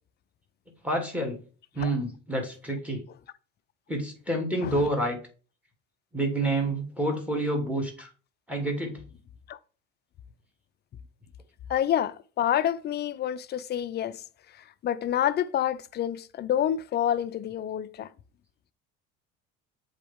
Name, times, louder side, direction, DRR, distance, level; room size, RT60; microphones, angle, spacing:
voice 1, 0.8-1.4 1.7-3.0 3.9-5.2 6.1-8.1 8.5-9.0, right 1 dB, 5° right, 2.2 m, -28 dB
voice 2, 11.7-14.2 14.5-18.1, left 10 dB, 35° left, 0.5 m, -28 dB
7.5 x 4.0 x 3.5 m
supercardioid pair, 100°, 31 cm